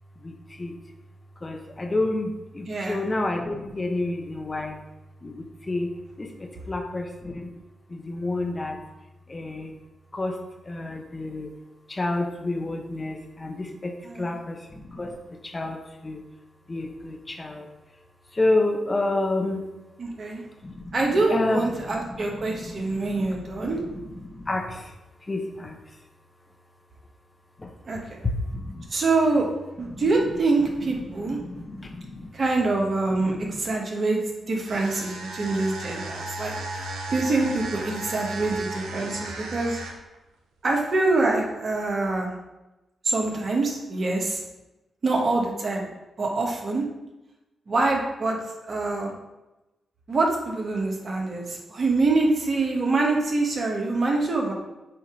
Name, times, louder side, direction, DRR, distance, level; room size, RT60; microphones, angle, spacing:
voice 1, 0.2-0.8 1.4-4.8 5.2-7.5 7.9-8.8 9.3-9.7 10.1-10.4 10.6-11.5 11.9-16.2 16.7-17.7 18.3-19.6 20.6-21.0 21.3-24.9 25.2-25.8 27.6-27.7 28.2-28.9 29.9-30.1 31.2-32.3 33.2-33.6, left 2 dB, 30° left, 3 dB, 1.0 m, -30 dB
voice 2, 2.7-3.0 14.0-14.3 20.0-20.5 20.9-23.8 27.9-28.2 28.9-29.5 29.8-31.4 32.3-34.2 34.5-39.8 40.6-42.3 43.0-44.4 45.0-45.9 46.2-46.8 47.7-48.4 48.7-49.1 50.1-54.5, right 3 dB, 55° right, 0 dB, 1.4 m, -25 dB
sound 1, 34.6-40.1, right 2 dB, 85° right, 0.8 m, -35 dB
6.9 x 2.9 x 5.0 m, 1.0 s
supercardioid pair, 50°, 0 cm